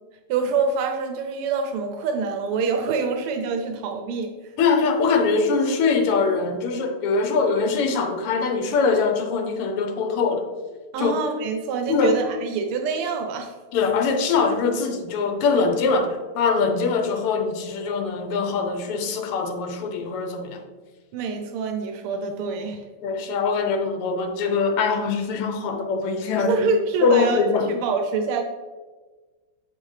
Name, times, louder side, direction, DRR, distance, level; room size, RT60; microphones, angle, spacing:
voice 1, 0.3-4.3 10.9-13.5 21.1-22.8 26.4-28.4, right 4 dB, 85° right, 5 dB, 1.5 m, -26 dB
voice 2, 4.6-10.5 11.0-11.1 11.9-12.2 13.7-20.6 23.0-26.5 27.0-27.7, left 4 dB, 85° left, 5 dB, 1.7 m, -22 dB
7.3 x 4.3 x 3.2 m, 1.3 s
omnidirectional pair, 2.4 m